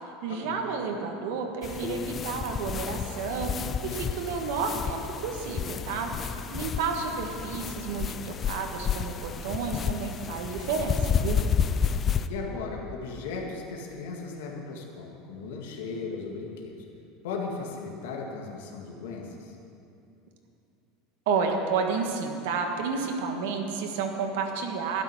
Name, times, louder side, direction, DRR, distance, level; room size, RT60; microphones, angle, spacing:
voice 1, 0.2-3.5 3.8-6.1 6.5-11.4 21.3-25.0, right 5 dB, 70° right, 3 dB, 1.6 m, -31 dB
sound 1, 1.6-12.3, left 7 dB, 20° left, 0.3 m, -31 dB
voice 2, 12.3-16.8 17.2-19.6, left 4 dB, 90° left, 0 dB, 2.1 m, -37 dB
12.5 x 6.8 x 9.9 m, 2.6 s
supercardioid pair, 175°, 0 cm